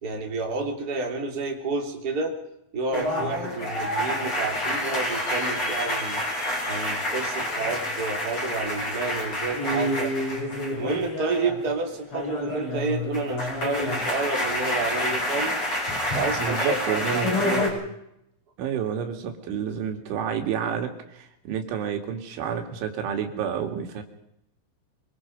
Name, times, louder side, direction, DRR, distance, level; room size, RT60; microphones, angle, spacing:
voice 1, 0.0-2.4 2.7-6.3 6.7-10.1 10.7-15.6 16.1-17.8, right 3 dB, 25° right, 1 dB, 3.0 m, -30 dB
sound 1, 2.9-11.7 12.0-17.7, left 1 dB, 30° left, 7.3 m, -28 dB
voice 2, 16.4-17.4 18.6-24.0, right 8 dB, 90° right, 4 dB, 4.7 m, -29 dB
25.0 x 24.0 x 5.3 m, 0.79 s
omnidirectional pair, 5.3 m